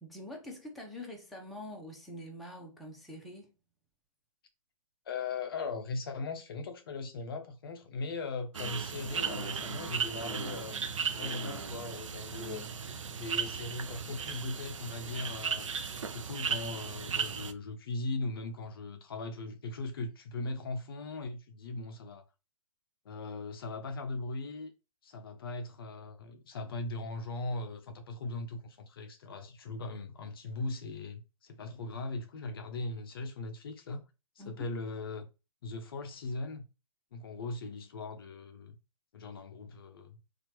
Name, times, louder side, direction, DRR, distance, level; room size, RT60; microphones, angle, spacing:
voice 1, 0.0-3.5 34.4-34.6, left 1 dB, ahead, 0.6 m, -45 dB
voice 2, 5.1-10.8 11.2-12.7 13.2-15.7 16.1-22.2 23.1-24.7 25.0-34.0 34.4-35.3 35.6-36.6 37.1-38.8 39.1-40.2, left 3 dB, 45° left, 0.5 m, -39 dB
sound 1, 8.5-17.5, right 6 dB, 60° right, 0.5 m, -36 dB
4.2 x 2.4 x 2.9 m
figure-of-eight pair, 125°, 18 cm